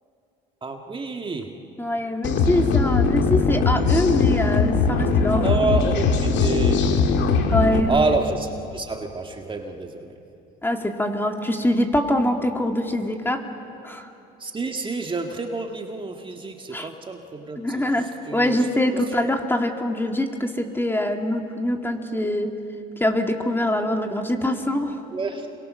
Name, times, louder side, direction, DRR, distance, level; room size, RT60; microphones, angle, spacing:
voice 1, 0.6-1.6 5.4-6.9 7.9-10.2 14.4-18.6 18.9-19.0 25.1-25.6, right 3 dB, 25° right, 3 dB, 1.8 m, -28 dB
voice 2, 1.8-5.9 7.5-8.2 10.6-13.5 13.8-14.1 16.7-16.9 17.6-22.5 23.0-25.0, left 1 dB, 10° left, 4 dB, 2.3 m, -24 dB
sound 1, 2.2-7.8, left 5 dB, 70° left, 2.1 m, -20 dB
27.5 x 23.0 x 6.5 m, 2.8 s
supercardioid pair, 80°, 19 cm